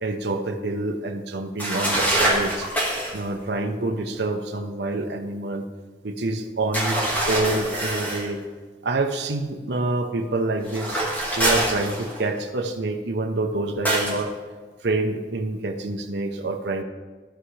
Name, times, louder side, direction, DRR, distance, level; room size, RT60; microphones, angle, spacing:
voice 1, 0.0-2.7 3.1-5.6 6.0-8.4 8.8-11.0 11.3-14.3 14.8-16.8, right 2 dB, 75° right, 4 dB, 0.8 m, -27 dB
sound 1, 1.6-3.2 6.7-8.3 10.6-12.4 13.9-14.2, right 1 dB, 10° left, 1.7 m, -24 dB
15.0 x 5.7 x 3.3 m, 1.4 s
head